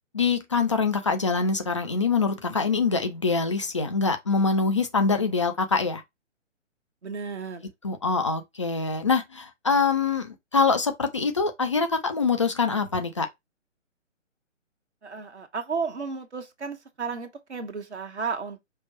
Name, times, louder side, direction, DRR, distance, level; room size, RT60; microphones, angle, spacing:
voice 1, 0.1-6.0 7.8-13.3, left 4 dB, 25° left, 0.5 m, -24 dB
voice 2, 7.0-7.7 15.0-18.6, right 5 dB, 65° right, 1.3 m, -33 dB
5.4 x 2.3 x 4.0 m
figure-of-eight pair, 135°, 37 cm